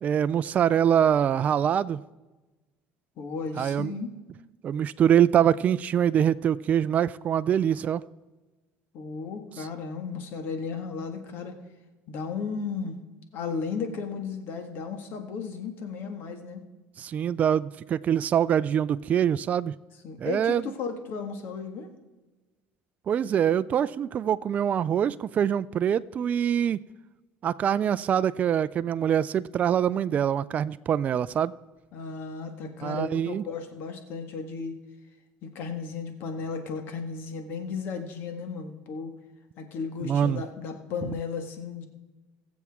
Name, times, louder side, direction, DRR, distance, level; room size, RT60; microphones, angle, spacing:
voice 1, 0.0-2.0 3.6-3.9 4.6-8.0 9.6-9.7 17.0-19.7 20.2-20.6 23.1-26.8 27.4-31.5 32.8-33.4 40.0-40.4, right 9 dB, 35° right, 14 dB, 0.3 m, -24 dB
voice 2, 3.2-4.1 8.9-11.5 12.1-13.0 13.3-16.6 20.0-21.9 31.9-34.8 35.4-39.2 39.6-41.9, left 5 dB, 60° left, 6 dB, 1.7 m, -34 dB
21.0 x 7.2 x 3.6 m, 1.2 s
supercardioid pair, 110°, 4 cm